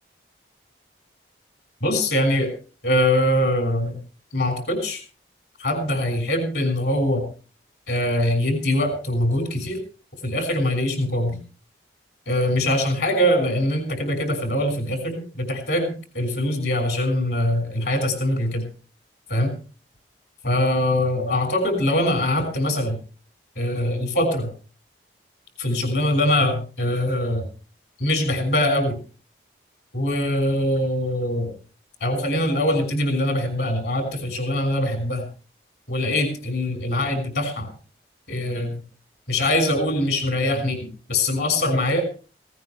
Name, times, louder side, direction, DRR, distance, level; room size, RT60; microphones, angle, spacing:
voice 1, 1.8-2.5 2.8-4.0 4.3-5.0 5.6-7.3 7.9-9.8 10.2-11.4 12.3-18.7 19.3-19.5 20.4-23.0 23.6-24.5 25.6-27.5 28.0-29.0 29.9-31.5 32.0-35.3 35.9-37.7 38.3-38.8 39.3-42.0, left 1 dB, 65° left, 6 dB, 6.2 m, -23 dB
19.0 x 18.0 x 3.4 m, 0.37 s
head